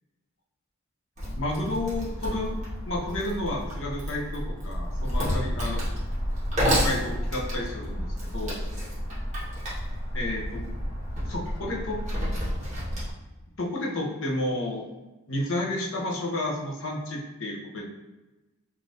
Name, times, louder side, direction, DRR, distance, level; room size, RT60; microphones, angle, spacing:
Wood, 1.2-13.1, equal, 30° right, 1.1 m, -30 dB
voice 1, 1.4-2.6 2.9-5.9 6.7-8.1 8.3-8.6 10.1-10.7 11.3-12.0 13.6-14.9 15.3-17.9, left 1 dB, 60° left, -2 dB, 0.7 m, -31 dB
3.3 x 2.4 x 2.6 m, 1.1 s
head